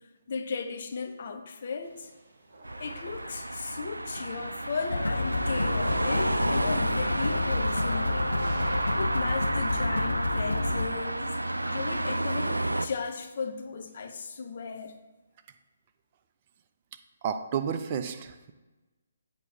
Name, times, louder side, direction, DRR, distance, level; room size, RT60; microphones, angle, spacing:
voice 1, 0.3-2.1 2.8-8.3 9.0-14.9, left 5 dB, 50° left, 5 dB, 0.7 m, -36 dB
sound 1, 1.8-9.0, right 2 dB, 60° right, 1.0 m, -47 dB
sound 2, 2.6-12.9, right 1 dB, 85° right, 0.3 m, -31 dB
sound 3, 4.9-10.9, left 2 dB, 80° left, 0.4 m, -29 dB
voice 2, 17.2-18.5, right 7 dB, 35° right, 7 dB, 0.5 m, -31 dB
8.1 x 3.0 x 5.4 m, 1.1 s
figure-of-eight pair, 140°, 0 cm